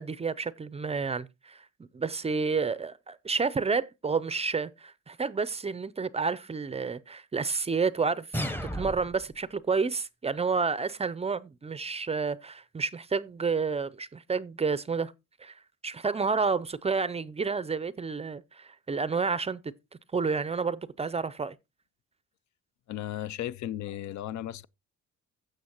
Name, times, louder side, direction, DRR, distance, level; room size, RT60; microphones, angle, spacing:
voice 1, 0.0-1.6 1.9-8.4 8.7-15.1 15.4-19.7 20.1-21.6, right 4 dB, 20° right, 0.4 m, -30 dB
sound 1, 8.3-9.3, equal, 5° left, 0.8 m, -33 dB
voice 2, 22.9-24.7, left 12 dB, 70° left, 0.5 m, -35 dB
16.0 x 6.4 x 2.9 m
cardioid pair, 90°, 30 cm